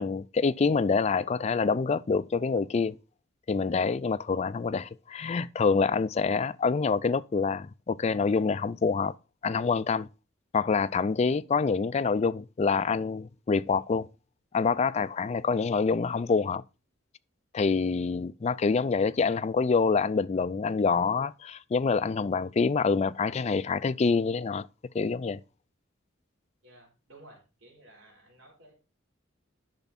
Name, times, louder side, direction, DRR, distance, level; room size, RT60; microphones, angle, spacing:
voice 1, 0.0-3.0 3.5-9.1 9.4-10.1 10.5-14.1 14.5-16.6 17.5-24.7 24.9-25.4, left 4 dB, 30° left, 0.3 m, -26 dB
voice 2, 26.6-28.7, right 1 dB, 65° right, 4.0 m, -54 dB
10.5 x 5.9 x 4.1 m
head